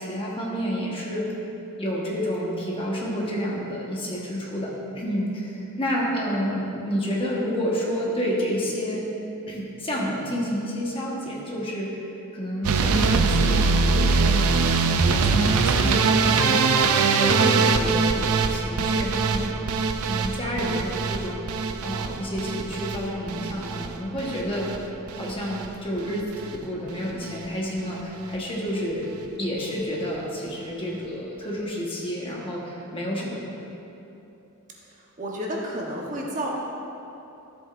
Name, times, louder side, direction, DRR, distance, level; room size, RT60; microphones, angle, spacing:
voice 1, 0.0-1.3 1.8-9.1 9.5-12.0 12.3-14.6 15.0-16.7 17.2-19.5 20.1-24.8 25.1-29.1 29.4-33.6, equal, 25° left, -4 dB, 1.3 m, -29 dB
sound 1, 12.6-24.8 25.1-25.7 26.0-26.6 26.9-27.1 27.4-27.5 27.8-27.9, right 4 dB, 80° right, 0.5 m, -22 dB
voice 2, 35.2-36.5, right 1 dB, 35° right, -3 dB, 1.0 m, -30 dB
13.5 x 7.6 x 2.5 m, 3.0 s
head